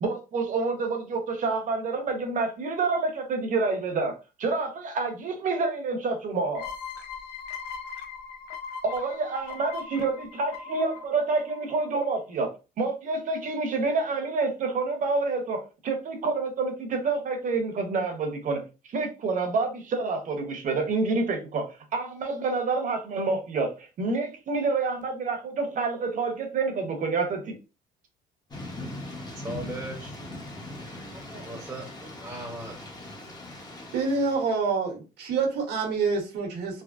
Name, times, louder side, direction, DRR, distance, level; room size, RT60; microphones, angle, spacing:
voice 1, 0.0-6.7 8.8-27.6, right 3 dB, 50° right, 0.9 m, -28 dB
sound 1, 6.5-12.0, left 6 dB, 80° left, 0.7 m, -39 dB
Thunder / Rain, 28.5-34.5, left 1 dB, 25° left, 0.9 m, -40 dB
voice 2, 28.7-30.2 30.9-32.8, right 1 dB, 10° right, 0.8 m, -40 dB
voice 3, 33.9-36.8, right 4 dB, 80° right, 1.1 m, -27 dB
3.4 x 2.0 x 2.4 m
cardioid pair, 110°, 17 cm